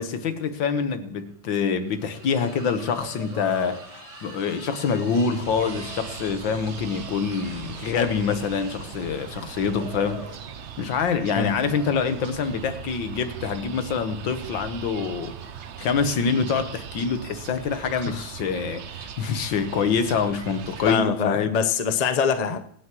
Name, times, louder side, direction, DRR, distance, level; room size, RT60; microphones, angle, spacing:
voice 1, 0.0-10.4 10.8-15.5 15.8-21.5, left 6 dB, 75° left, 1.8 m, -26 dB
sound 1, 1.0-19.9, right 2 dB, 20° right, 1.5 m, -46 dB
sound 2, 5.4-21.0, right 8 dB, 80° right, 0.6 m, -39 dB
voice 2, 11.3-11.7 17.9-18.3 20.9-22.6, left 6 dB, 60° left, 0.4 m, -24 dB
24.5 x 9.6 x 3.0 m
omnidirectional pair, 2.1 m